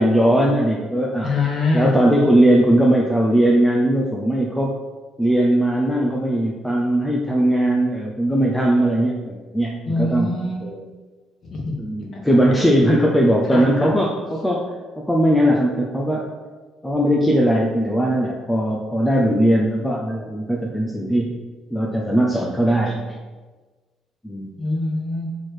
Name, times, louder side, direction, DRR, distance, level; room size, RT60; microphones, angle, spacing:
voice 1, 0.0-1.3 1.7-4.7 5.2-10.3 10.6-10.8 11.8-14.7 15.0-16.3 16.8-21.4 21.7-23.1 24.2-24.5, right 1 dB, 5° left, -2 dB, 0.5 m, -19 dB
voice 2, 1.2-2.0 9.9-10.6 11.4-11.7 12.3-12.4 13.5-13.9 24.6-25.3, left 2 dB, 35° left, -2 dB, 1.5 m, -23 dB
6.2 x 4.4 x 4.8 m, 1.3 s
cardioid pair, 165°, 0 cm